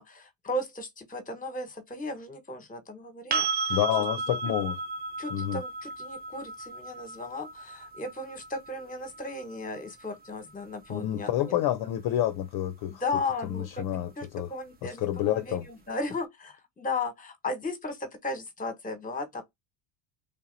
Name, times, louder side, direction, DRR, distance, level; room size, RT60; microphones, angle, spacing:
voice 1, 0.0-3.8 5.2-11.5 12.9-19.4, left 2 dB, 15° left, 1.2 m, -36 dB
sound 1, 3.3-11.1 13.9-14.0, right 4 dB, 25° right, 0.3 m, -35 dB
voice 2, 3.7-4.7 5.3-5.6 10.9-13.0 13.4-14.5 14.8-15.7, left 12 dB, 50° left, 0.6 m, -29 dB
3.5 x 2.8 x 3.9 m
cardioid pair, 120°, 48 cm